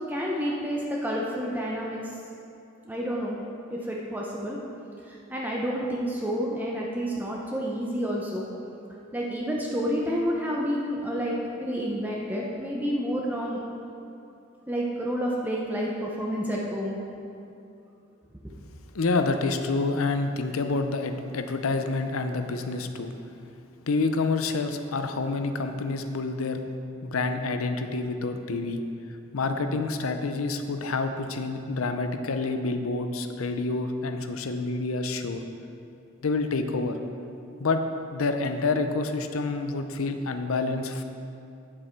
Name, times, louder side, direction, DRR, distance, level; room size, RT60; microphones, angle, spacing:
voice 1, 0.0-2.0 2.8-3.4 3.7-4.6 5.1-8.5 9.1-13.6 14.7-17.0, equal, 10° right, -3 dB, 0.7 m, -29 dB
voice 2, 18.9-23.1 23.9-26.6 27.0-28.8 29.3-35.4 36.2-37.0 37.6-37.8 38.1-41.0, left 3 dB, 90° left, 7 dB, 0.6 m, -28 dB
9.1 x 7.5 x 4.5 m, 2.7 s
head